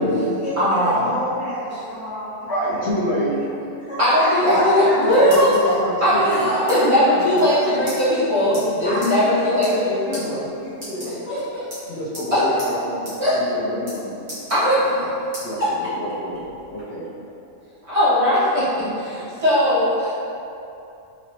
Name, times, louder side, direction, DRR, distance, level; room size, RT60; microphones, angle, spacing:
voice 1, 0.0-2.8 3.1-3.3 3.8-4.9 6.3-6.8 7.5-7.6 8.8-9.2 9.5-9.6 10.1-11.4, equal, 10° right, -13 dB, 0.5 m, -30 dB
voice 2, 0.6-1.1 4.0-5.7 6.0-8.5 8.8-10.4 11.3-11.6 12.3-12.4 13.2-13.3 14.5-14.8 17.9-20.1, equal, 25° right, -13 dB, 1.1 m, -19 dB
voice 3, 2.4-3.4 4.4-4.6 5.0-6.5 7.0-7.5 8.5-9.0 10.9-11.2 11.8-14.1 14.7-15.1 15.4-16.4 16.7-17.0, equal, 65° left, -8 dB, 0.8 m, -27 dB
sound 1, 5.0-5.7 6.3-6.8 7.1-7.2 7.3-7.5 7.9-8.0 8.5-8.6 9.0-9.1 9.5-9.8 10.1-10.2 10.7-11.4 11.7-12.3 12.6-12.7 13.0-13.2 13.4-14.0 14.3-15.0 15.3-15.5 16.0-16.8, equal, 65° right, 1.8 m, -37 dB
4.0 x 2.6 x 2.9 m, 2.7 s
omnidirectional pair, 1.4 m